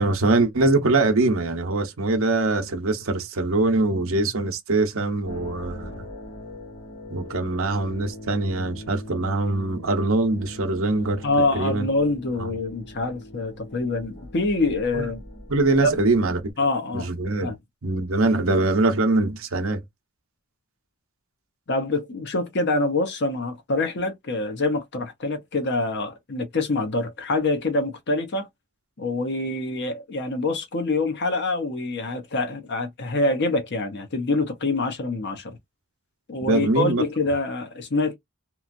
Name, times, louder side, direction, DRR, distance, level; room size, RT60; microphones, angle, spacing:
voice 1, 0.0-6.1 7.1-11.9 14.9-15.1 15.5-16.5 16.9-17.5 17.8-19.8 36.4-37.0, right 2 dB, 65° right, 0.8 m, -23 dB
sound 1, 5.3-16.5, left 1 dB, 25° left, 0.8 m, -41 dB
voice 2, 11.2-15.2 15.8-15.9 16.6-17.1 17.4-17.6 21.7-28.5 29.0-35.6 36.3-38.1, left 2 dB, 50° left, 0.8 m, -25 dB
3.0 x 2.4 x 2.5 m
head